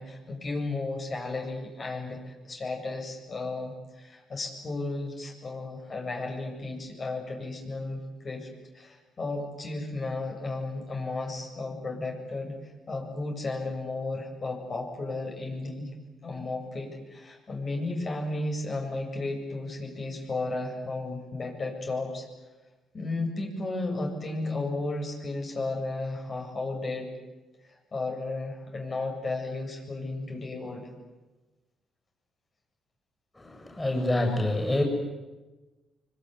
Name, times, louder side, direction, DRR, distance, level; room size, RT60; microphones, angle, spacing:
voice 1, 0.0-8.0 8.2-8.5 8.7-15.9 16.2-22.3 22.9-27.1 27.7-30.9, left 2 dB, 40° left, 1 dB, 7.9 m, -34 dB
voice 2, 33.4-34.8, left 1 dB, 15° left, 2 dB, 7.5 m, -27 dB
24.5 x 24.5 x 9.9 m, 1.2 s
cardioid pair, 90°, 0 cm